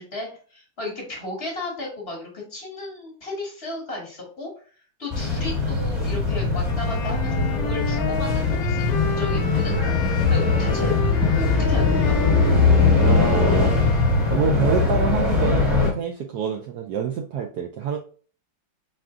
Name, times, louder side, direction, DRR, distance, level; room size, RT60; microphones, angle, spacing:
voice 1, 0.0-4.5 5.0-9.7 10.3-12.2, left 2 dB, 35° left, -2 dB, 1.3 m, -34 dB
sound 1, 5.1-15.9, left 4 dB, ahead, 1.0 m, -21 dB
Wind instrument woodwind instrument, 6.7-14.6, left 4 dB, 75° left, 1.3 m, -32 dB
voice 2, 13.0-13.8 14.3-18.0, right 7 dB, 90° right, 2 dB, 0.8 m, -26 dB
4.7 x 2.4 x 3.6 m, 0.41 s
omnidirectional pair, 2.2 m